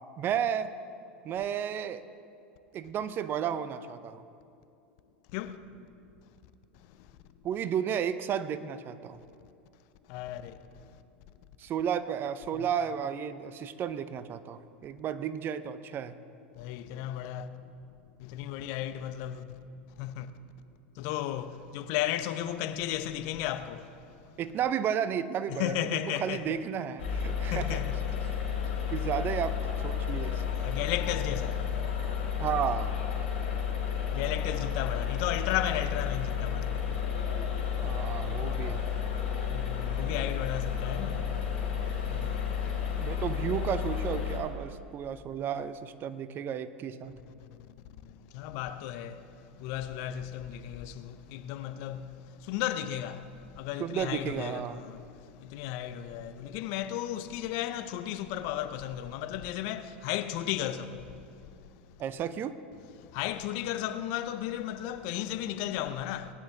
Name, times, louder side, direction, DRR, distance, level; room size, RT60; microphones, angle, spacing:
voice 1, 0.2-0.7 1.2-2.0 2.7-4.2 7.4-9.2 11.6-16.1 24.4-27.8 28.9-30.4 32.4-32.9 37.8-38.8 43.0-47.2 53.8-54.8 62.0-62.5, right 8 dB, 35° right, 0.6 m, -33 dB
voice 2, 10.1-10.5 16.6-17.5 18.3-19.4 20.0-20.3 21.0-23.8 25.5-26.6 27.5-27.9 30.6-31.5 34.1-36.6 39.5-41.2 42.1-42.5 48.3-49.2 49.6-50.9 51.3-52.0 52.5-53.2 53.6-55.0 55.5-61.0 63.1-66.3, left 12 dB, 55° left, 0.7 m, -34 dB
sound 1, 27.0-44.4, left 7 dB, 70° left, 2.3 m, -32 dB
19.0 x 10.5 x 3.4 m
hypercardioid pair, 90°, 6 cm